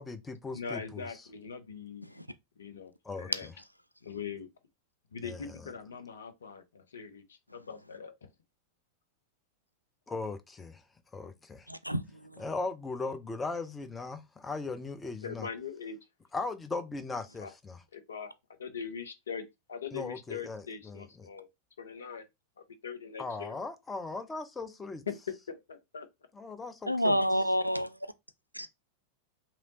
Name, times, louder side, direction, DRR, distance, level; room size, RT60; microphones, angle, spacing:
voice 1, 0.0-1.1 3.0-3.5 5.2-5.7 10.1-10.8 11.1-11.7 12.4-15.5 16.3-17.8 19.9-21.3 23.2-25.0 26.3-27.2, left 3 dB, 15° left, 0.5 m, -38 dB
voice 2, 0.5-2.2 2.6-2.9 3.2-3.5 4.0-4.5 5.1-8.3 15.2-16.0 17.4-17.5 17.9-18.3 18.6-21.5 21.8-22.3 22.8-23.5 25.1-25.2 25.5-26.1, left 6 dB, 70° left, 0.7 m, -41 dB
voice 3, 11.7-12.0 12.3-12.4 26.9-27.9 28.5-28.7, equal, 90° right, 0.3 m, -28 dB
3.1 x 2.8 x 2.8 m
figure-of-eight pair, 90°, 0 cm